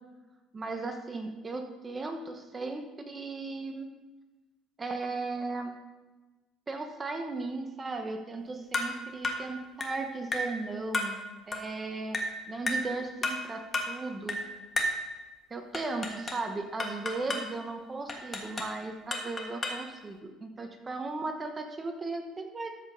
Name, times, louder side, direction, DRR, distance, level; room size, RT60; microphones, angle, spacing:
voice 1, 0.5-3.9 4.8-5.7 6.7-11.2 11.5-12.2 12.5-14.4 15.5-22.7, right 3 dB, 25° right, 5 dB, 1.1 m, -36 dB
sound 1, 8.7-9.0 9.2-9.5 9.8-10.0 10.3-10.6 10.9-11.2 11.5-11.7 12.1-12.4 12.7-12.9 13.2-13.5 13.7-14.0 14.3-14.5 14.8-15.0 15.7-16.5 16.8-17.5 18.1-18.8 19.1-19.9, left 1 dB, 25° left, 1.5 m, -32 dB
13.5 x 5.2 x 5.2 m, 1.2 s
cardioid pair, 115°, 0 cm